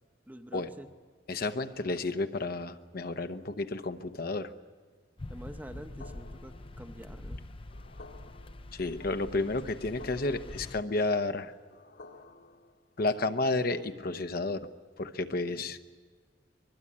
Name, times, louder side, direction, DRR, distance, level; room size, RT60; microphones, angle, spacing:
voice 1, 0.3-0.9 5.3-7.4 15.5-15.7, right 1 dB, 10° right, 7 dB, 0.9 m, -47 dB
voice 2, 1.3-4.5 8.7-11.5 13.0-14.7 15.0-15.8, left 2 dB, 55° left, 9 dB, 0.9 m, -31 dB
sound 1, 5.2-10.8, left 1 dB, 30° left, 0.6 m, -45 dB
sound 2, 6.0-13.8, left 3 dB, 75° left, 2.7 m, -54 dB
23.5 x 22.0 x 8.6 m, 1.5 s
head